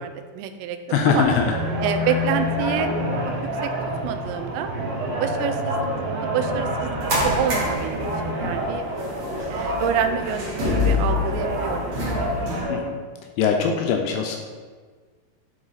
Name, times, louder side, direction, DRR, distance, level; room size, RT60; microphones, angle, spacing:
voice 1, 0.3-0.8 1.1-1.3 1.8-2.9 3.4-3.7 4.0-4.7 5.2-5.8 6.2-6.9 7.2-8.8 9.5-12.1, right 8 dB, 90° right, 8 dB, 2.8 m, -27 dB
voice 2, 0.9-1.5 12.7-13.0 13.4-14.4, left 6 dB, 80° left, 3 dB, 2.4 m, -21 dB
sound 1, 1.2-12.8, equal, 70° right, 3.4 m, -27 dB
sound 2, 6.7-12.6, left 3 dB, 50° right, 1.8 m, -27 dB
9.5 x 3.9 x 4.0 m, 1.5 s
omnidirectional pair, 5.0 m